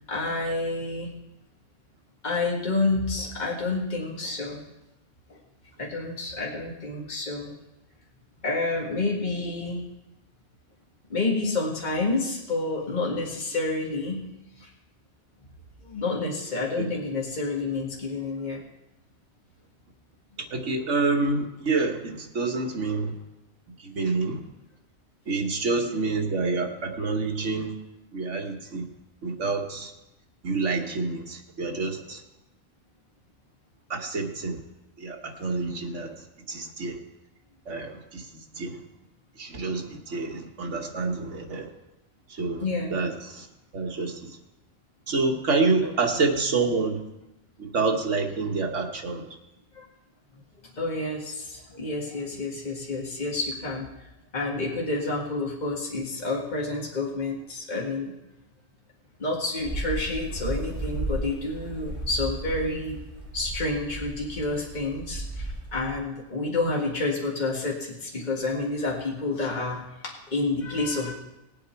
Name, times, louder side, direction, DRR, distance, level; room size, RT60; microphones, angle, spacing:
voice 1, 0.1-1.1 2.2-4.6 5.3-5.4 5.8-7.6 8.4-9.8 11.1-14.2 14.6-14.7 15.8-18.6 42.6-43.0 45.8-45.9 49.7-49.9 50.8-54.1 54.3-58.1 59.2-63.0 63.3-71.1, left 2 dB, 35° left, -3 dB, 1.9 m, -29 dB
voice 2, 20.5-23.1 23.8-24.4 25.3-27.7 28.1-28.8 29.2-29.9 30.4-32.2 33.9-34.6 35.0-36.1 36.5-37.0 37.7-38.3 38.6-38.8 39.4-41.7 42.4-42.6 42.9-43.5 43.7-44.3 45.1-47.0 47.6-49.2, right 3 dB, 75° right, 2 dB, 1.8 m, -27 dB
sound 1, 59.6-66.0, right 1 dB, 30° right, 5.9 m, -34 dB
19.5 x 8.2 x 4.5 m, 0.94 s
omnidirectional pair, 1.2 m